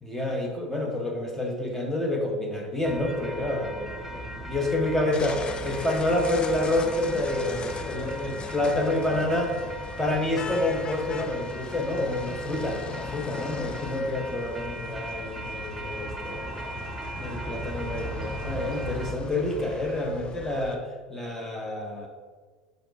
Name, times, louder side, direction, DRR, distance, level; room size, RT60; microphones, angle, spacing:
voice 1, 0.0-9.5 10.0-16.6 17.1-20.8 21.1-22.1, left 1 dB, 10° left, 1 dB, 1.3 m, -28 dB
sound 1, 2.8-19.1, right 1 dB, 10° right, 0.8 m, -38 dB
sound 2, 5.1-20.8, left 5 dB, 30° left, 0.5 m, -40 dB
5.3 x 4.8 x 4.6 m, 1.4 s
hypercardioid pair, 75°, 3 cm